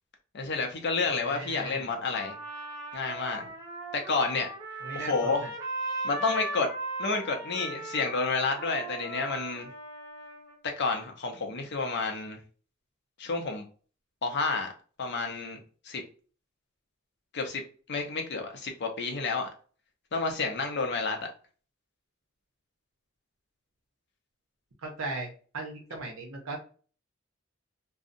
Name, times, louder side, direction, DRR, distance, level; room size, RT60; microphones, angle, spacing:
voice 1, 0.3-2.4 2.9-3.5 3.9-4.5 4.9-5.5 6.0-6.7 7.0-9.7 10.6-12.4 13.2-13.6 14.2-14.7 15.0-15.6 15.8-16.0 17.3-17.6 17.9-19.5 20.1-21.2, left 4 dB, 55° left, 4 dB, 0.5 m, -30 dB
voice 2, 1.2-1.9 4.8-5.5 24.8-25.3 25.5-26.6, right 3 dB, 90° right, 1 dB, 0.7 m, -37 dB
Trumpet, 2.1-10.5, right 1 dB, 15° right, 0.5 m, -38 dB
2.6 x 2.0 x 2.5 m, 0.40 s
head